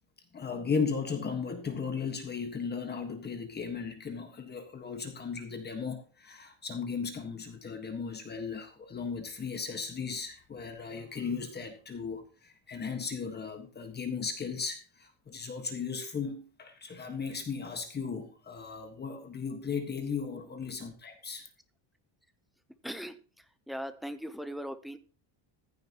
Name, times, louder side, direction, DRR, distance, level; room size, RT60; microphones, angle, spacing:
voice 1, 0.3-21.5, left 5 dB, 20° left, 6 dB, 1.5 m, -36 dB
voice 2, 22.8-23.2 23.7-25.0, equal, ahead, 9 dB, 0.7 m, -38 dB
15.0 x 10.0 x 3.0 m, 0.35 s
cardioid pair, 170°, 47 cm